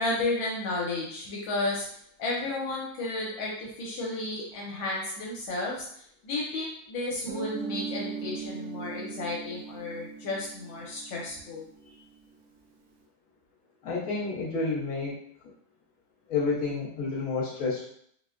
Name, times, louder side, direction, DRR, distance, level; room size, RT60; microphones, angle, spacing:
voice 1, 0.0-1.9 2.2-11.7, left 2 dB, 75° left, -3 dB, 1.3 m, -33 dB
Guitar, 7.3-11.8, right 6 dB, 75° right, 1.2 m, -39 dB
voice 2, 13.8-15.2 16.3-17.9, left 4 dB, 50° left, -4 dB, 1.2 m, -30 dB
4.2 x 2.1 x 2.4 m, 0.66 s
omnidirectional pair, 2.2 m